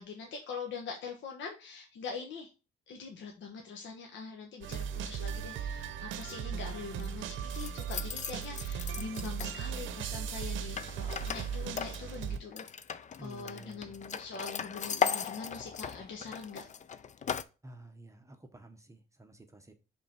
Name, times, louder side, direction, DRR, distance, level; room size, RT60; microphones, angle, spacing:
voice 1, 0.0-2.5 2.9-12.6 13.2-16.7, left 5 dB, 70° left, 2 dB, 1.1 m, -43 dB
sound 1, 4.6-12.4, right 8 dB, 75° right, 0.7 m, -37 dB
sound 2, 6.1-6.3 6.7-7.1 7.5-9.9 10.8-17.4, left 7 dB, 35° left, 0.5 m, -38 dB
voice 2, 13.2-14.0 17.6-19.7, right 1 dB, 15° right, 5 dB, 0.9 m, -51 dB
5.0 x 3.9 x 5.8 m, 0.32 s
cardioid pair, 90°, 20 cm